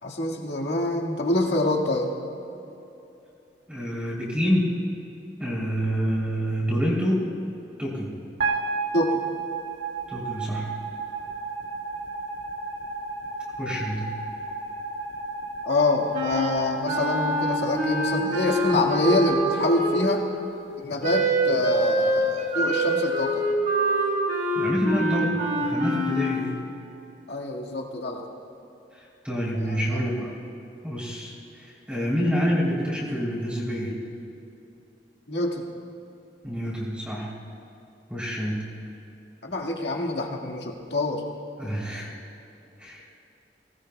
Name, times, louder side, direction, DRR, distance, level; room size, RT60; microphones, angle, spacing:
voice 1, 0.0-2.1 8.9-9.2 15.7-20.2 20.8-23.4 27.3-28.3 29.5-30.0 35.3-35.6 39.4-41.2, left 2 dB, 75° left, 0 dB, 1.8 m, -26 dB
voice 2, 3.7-4.7 5.4-7.3 7.8-8.2 10.1-10.7 13.6-14.1 24.5-26.5 28.9-30.4 30.8-34.0 36.4-37.3 38.1-38.6 41.6-42.1 42.8-43.0, equal, 5° right, -7 dB, 3.1 m, -27 dB
sound 1, 8.4-20.7, right 3 dB, 70° right, 2.3 m, -33 dB
Wind instrument woodwind instrument, 16.1-20.3 21.0-26.4, right 1 dB, 45° right, 2.7 m, -25 dB
22.0 x 18.0 x 2.2 m, 2.9 s
head